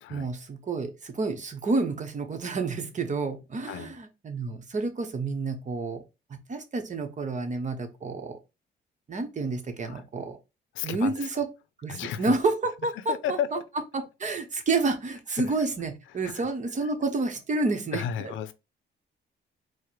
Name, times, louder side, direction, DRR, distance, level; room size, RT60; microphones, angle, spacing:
voice 1, 0.1-6.0 6.3-8.4 9.1-10.4 10.8-11.5 11.8-13.6 13.9-18.5, right 3 dB, 40° right, 1.0 m, -29 dB
voice 2, 10.7-11.1 11.9-12.3 13.1-13.6 16.2-16.5 17.9-18.5, left 9 dB, 80° left, 0.5 m, -32 dB
4.6 x 2.2 x 4.6 m
cardioid pair, 90°, 20 cm